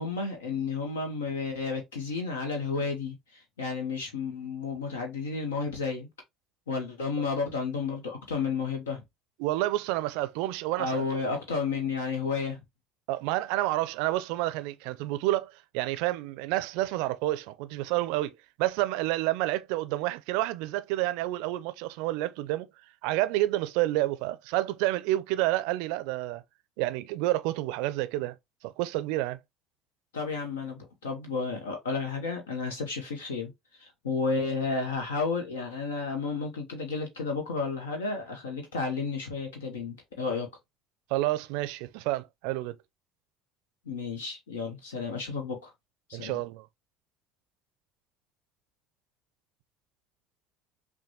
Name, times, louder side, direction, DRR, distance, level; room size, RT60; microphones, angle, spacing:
voice 1, 0.0-6.1 6.7-9.0 10.8-12.6 30.1-40.5 43.9-45.7 46.1-46.4, left 4 dB, 80° left, 0.8 m, -32 dB
voice 2, 9.4-11.0 13.1-22.7 23.0-26.4 26.8-28.3 28.6-29.4 41.1-42.8 46.1-46.7, right 16 dB, 65° right, 0.4 m, -29 dB
5.9 x 2.2 x 2.8 m
figure-of-eight pair, 60°, 0 cm